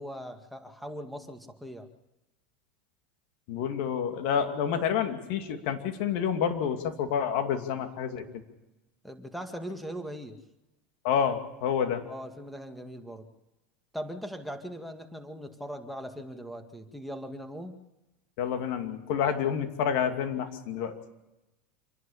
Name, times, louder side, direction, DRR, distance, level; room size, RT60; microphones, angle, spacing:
voice 1, 0.0-1.9 9.0-10.4 12.1-13.3 13.9-17.7, equal, ahead, 6 dB, 2.1 m, -40 dB
voice 2, 3.5-8.2 11.0-12.0 18.4-20.9, left 8 dB, 65° left, 6 dB, 2.5 m, -28 dB
27.0 x 11.0 x 8.6 m, 1.0 s
supercardioid pair, 110°, 5 cm